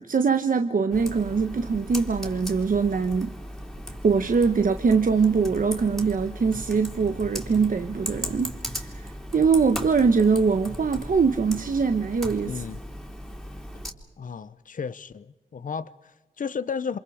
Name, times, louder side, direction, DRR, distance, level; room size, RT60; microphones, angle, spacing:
voice 1, 0.0-3.4 4.0-12.6, right 5 dB, 65° right, 1.1 m, -23 dB
Computer keyboard, 0.9-13.9, equal, ahead, 3.4 m, -37 dB
voice 2, 12.4-12.8 14.2-15.3 15.5-17.0, left 6 dB, 60° left, 0.7 m, -33 dB
28.5 x 27.0 x 5.0 m
wide cardioid pair, 75°, 15 cm